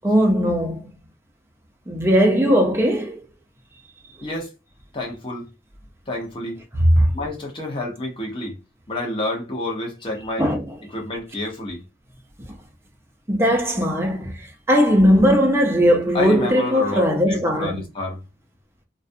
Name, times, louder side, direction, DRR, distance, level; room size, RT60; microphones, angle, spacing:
voice 1, 0.0-0.9 1.9-3.2 6.9-7.1 10.4-10.6 13.3-17.8, equal, 15° right, 0.5 m, -18 dB
voice 2, 4.2-4.5 4.9-5.5 6.1-6.6 7.1-8.6 8.9-10.5 10.9-11.8 16.1-18.2, left 2 dB, 30° left, 0.7 m, -29 dB
2.4 x 2.1 x 2.6 m
head